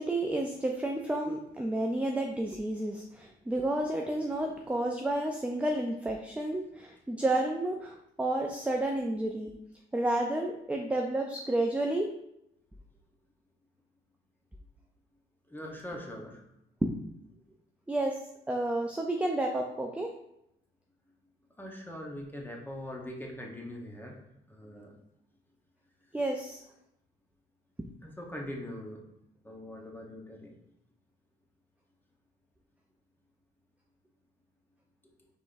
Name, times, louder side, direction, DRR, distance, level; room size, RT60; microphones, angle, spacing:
voice 1, 0.0-9.5 9.9-12.1 16.8-17.0 17.9-18.2 18.5-20.1 26.1-26.6, right 1 dB, 5° right, 2 dB, 0.4 m, -31 dB
voice 2, 15.5-16.4 21.6-24.2 24.5-24.9 28.0-29.1 29.4-30.5, left 1 dB, 10° left, 0 dB, 0.9 m, -42 dB
4.9 x 3.5 x 2.5 m, 0.80 s
cardioid pair, 90°, 20 cm